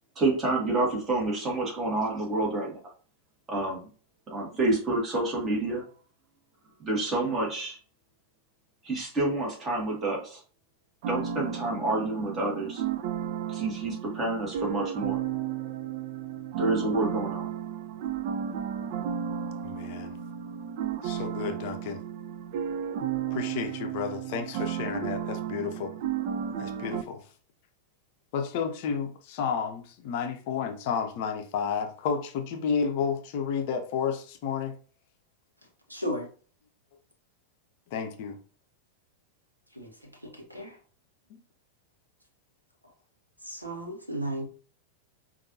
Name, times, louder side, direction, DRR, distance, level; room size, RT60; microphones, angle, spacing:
voice 1, 0.2-2.8 3.5-3.9 4.3-5.9 6.8-7.8 8.8-10.4 11.1-12.8 13.5-15.2 16.6-17.5, right 2 dB, 25° right, -2 dB, 1.8 m, -28 dB
sound 1, 11.0-27.0, right 9 dB, 50° right, 0.3 m, -33 dB
voice 2, 19.6-20.2 21.0-22.0 23.3-25.9 26.6-27.2 28.3-34.8 37.9-38.4, left 6 dB, 50° left, 6 dB, 0.6 m, -31 dB
voice 3, 35.9-36.3 39.7-40.8 43.4-44.5, equal, 90° right, 1 dB, 1.0 m, -35 dB
5.1 x 2.6 x 2.7 m, 0.40 s
figure-of-eight pair, 90°, 0 cm